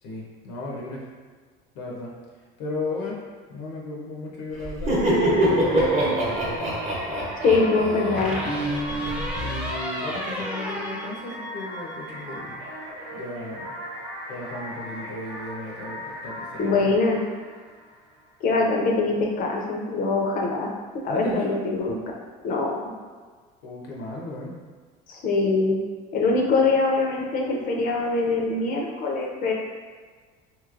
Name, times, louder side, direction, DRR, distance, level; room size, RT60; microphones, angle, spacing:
voice 1, 0.0-1.1 1.7-2.1 2.6-3.2 3.5-6.8 8.8-12.6 13.1-13.8 14.3-17.0 21.1-21.5 23.6-24.5, left 2 dB, 85° left, -3 dB, 0.7 m, -36 dB
Laughter, 4.6-9.3, right 1 dB, 35° right, 0.8 m, -24 dB
sound 1, 4.9-18.3, equal, 90° right, 1.0 m, -39 dB
sound 2, 5.4-6.3 8.2-11.9, equal, 5° right, 0.5 m, -31 dB
voice 2, 7.4-8.4 16.6-17.2 18.4-22.0 22.4-22.8 25.1-25.8 26.1-29.5, left 3 dB, 45° left, 0 dB, 0.5 m, -23 dB
3.1 x 2.9 x 2.4 m, 1.5 s
cardioid pair, 135°, 20 cm